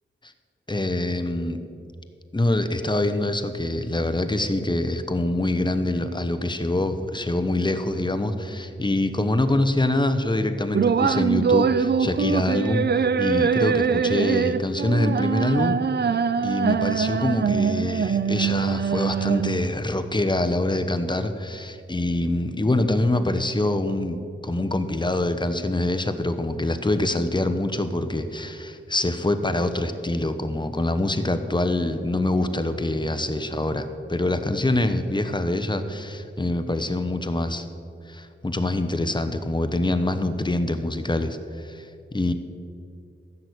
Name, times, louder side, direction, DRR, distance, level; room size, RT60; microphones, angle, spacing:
voice 1, 0.7-1.6 2.3-15.8 16.4-37.7 38.1-42.3, left 1 dB, 20° left, 9 dB, 1.0 m, -25 dB
sound 1, 10.7-19.7, right 6 dB, 55° right, 0.5 m, -23 dB
15.0 x 6.3 x 8.4 m, 2.5 s
wide cardioid pair, 70°, 21 cm